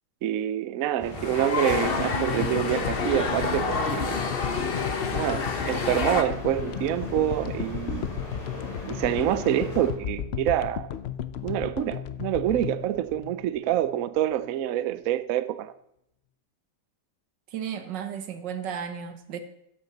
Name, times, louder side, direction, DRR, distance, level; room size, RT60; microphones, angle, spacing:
voice 1, 0.2-4.2 5.1-8.1 8.9-10.9 11.4-15.7, right 12 dB, 65° right, 13 dB, 0.9 m, -27 dB
sound 1, 1.0-9.9, left 2 dB, 20° left, 3.2 m, -39 dB
sound 2, 1.1-6.2, left 4 dB, 40° left, 1.1 m, -28 dB
sound 3, 1.7-14.0, left 9 dB, 75° left, 0.5 m, -35 dB
voice 2, 17.5-19.4, right 8 dB, 85° right, 9 dB, 1.8 m, -34 dB
14.0 x 11.0 x 4.0 m, 0.78 s
omnidirectional pair, 1.9 m